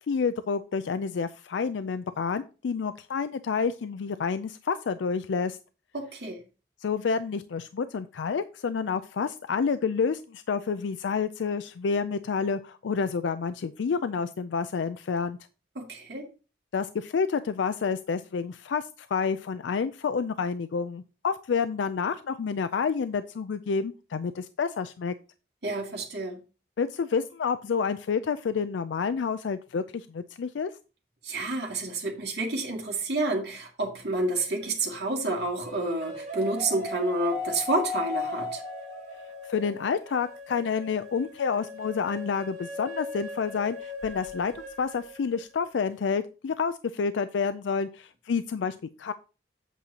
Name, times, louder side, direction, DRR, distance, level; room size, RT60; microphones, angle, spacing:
voice 1, 0.1-5.6 6.8-15.4 16.7-25.1 26.8-30.7 39.5-49.1, left 5 dB, 90° left, 0.4 m, -29 dB
voice 2, 5.9-6.4 15.8-16.3 25.6-26.4 31.2-38.6, right 2 dB, 65° right, 2.2 m, -29 dB
sound 1, 34.2-34.9 35.6-45.6, left 3 dB, 45° right, 3.3 m, -38 dB
8.2 x 7.7 x 2.8 m
head